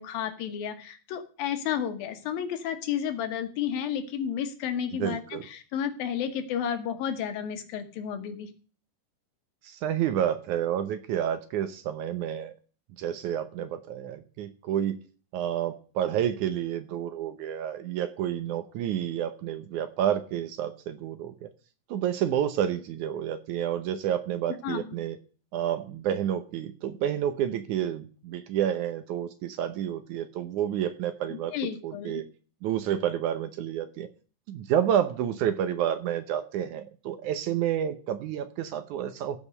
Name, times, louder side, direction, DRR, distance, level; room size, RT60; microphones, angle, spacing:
voice 1, 0.0-8.5 24.6-24.9 31.3-32.2, left 8 dB, 90° left, 8 dB, 3.1 m, -32 dB
voice 2, 5.0-5.4 9.6-12.5 13.0-15.0 15.3-21.5 21.9-25.2 25.5-31.5 31.8-32.2 32.6-34.1 34.5-39.4, right 10 dB, 70° right, 10 dB, 2.0 m, -29 dB
15.5 x 5.2 x 6.5 m, 0.39 s
omnidirectional pair, 4.0 m